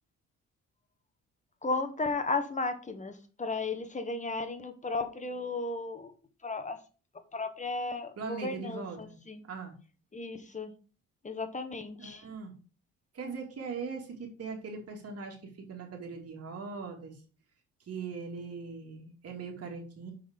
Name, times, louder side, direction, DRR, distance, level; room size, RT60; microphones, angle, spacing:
voice 1, 1.6-6.1 6.4-6.8 7.3-9.4 10.1-10.7 11.2-12.2, left 3 dB, 25° left, 8 dB, 1.3 m, -34 dB
voice 2, 8.2-9.1 9.5-9.7 12.0-12.5 13.1-17.1 17.9-20.1, right 4 dB, 55° right, 1 dB, 2.8 m, -40 dB
6.3 x 5.5 x 5.3 m, 0.37 s
cardioid pair, 90°, 30 cm